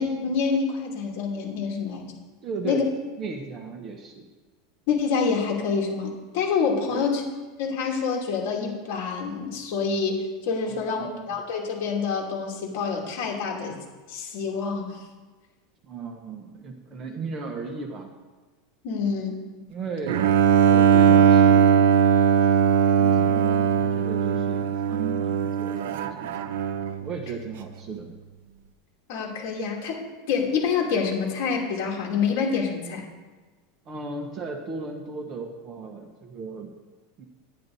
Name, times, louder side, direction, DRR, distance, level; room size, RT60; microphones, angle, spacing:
voice 1, 0.0-2.1 2.6-2.8 4.9-7.2 7.6-13.8 14.1-15.0 18.8-19.4 29.1-30.0 30.3-33.0, left 5 dB, 50° left, -1 dB, 2.6 m, -27 dB
voice 2, 2.4-2.9 3.2-4.3 6.9-7.0 10.7-11.4 15.8-18.1 19.7-20.3 20.6-21.9 23.0-26.5 27.0-28.1 33.9-36.7 37.2-37.3, right 4 dB, 25° right, 5 dB, 0.8 m, -36 dB
Bowed string instrument, 20.1-27.1, right 7 dB, 75° right, 0.7 m, -19 dB
10.5 x 10.0 x 4.1 m, 1.3 s
supercardioid pair, 175°, 0 cm